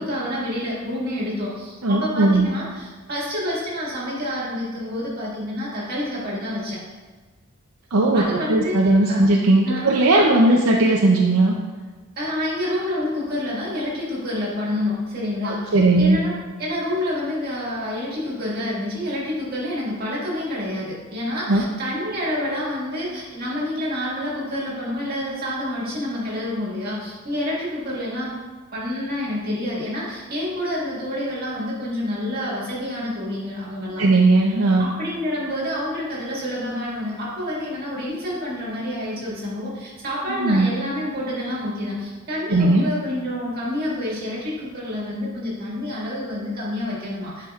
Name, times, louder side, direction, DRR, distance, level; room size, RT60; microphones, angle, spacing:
voice 1, 0.0-6.8 8.1-9.2 9.6-9.8 10.1-10.4 12.2-16.3 16.6-28.3 28.7-34.0 34.8-47.5, left 1 dB, 45° right, -6 dB, 1.9 m, -28 dB
voice 2, 1.8-2.5 7.9-11.5 15.4-16.2 21.5-21.6 34.0-34.9 40.4-40.7 42.5-42.8, right 2 dB, 70° right, -1 dB, 0.6 m, -17 dB
9.9 x 4.8 x 2.4 m, 1.4 s
head